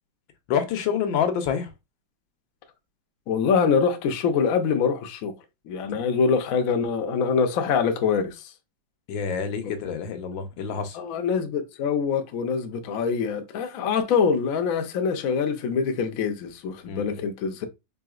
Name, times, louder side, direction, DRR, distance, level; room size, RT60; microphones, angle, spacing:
voice 1, 0.5-1.7 9.1-11.0 16.9-17.1, left 7 dB, 85° left, 1.5 m, -27 dB
voice 2, 3.3-5.3 5.7-8.5 10.9-17.7, left 6 dB, 65° left, 0.8 m, -24 dB
3.9 x 3.4 x 2.4 m
omnidirectional pair, 2.1 m